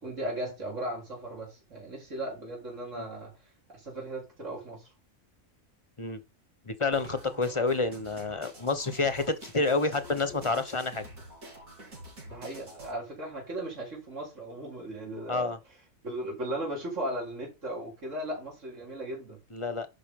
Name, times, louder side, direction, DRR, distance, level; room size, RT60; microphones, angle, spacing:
voice 1, 0.0-3.3 3.7-4.9 12.3-15.5 16.0-19.4, right 1 dB, 60° right, 4.2 m, -37 dB
voice 2, 6.7-11.0 15.3-15.6 19.5-19.9, left 3 dB, 25° left, 1.0 m, -29 dB
sound 1, 6.9-12.9, right 1 dB, 80° right, 4.0 m, -47 dB
11.0 x 5.4 x 3.7 m
omnidirectional pair, 1.4 m